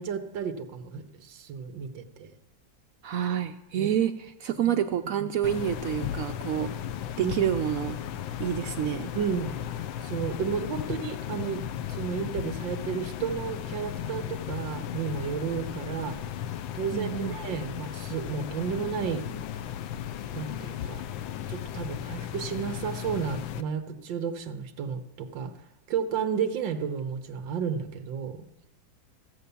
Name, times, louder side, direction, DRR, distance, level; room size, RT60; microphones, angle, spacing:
voice 1, 0.0-2.3 3.8-3.9 4.7-4.8 5.0-5.2 7.2-7.3 9.2-9.6 10.0-16.2 16.7-19.4 20.3-21.0 21.5-25.5 25.9-28.5, right 7 dB, 70° right, 8 dB, 1.7 m, -32 dB
voice 2, 3.0-6.7 7.2-8.0 8.4-9.1 16.9-17.4, right 10 dB, 90° right, 7 dB, 0.7 m, -28 dB
sound 1, 5.4-23.6, left 10 dB, 90° left, 1.5 m, -35 dB
16.0 x 8.0 x 6.9 m, 0.91 s
omnidirectional pair, 2.1 m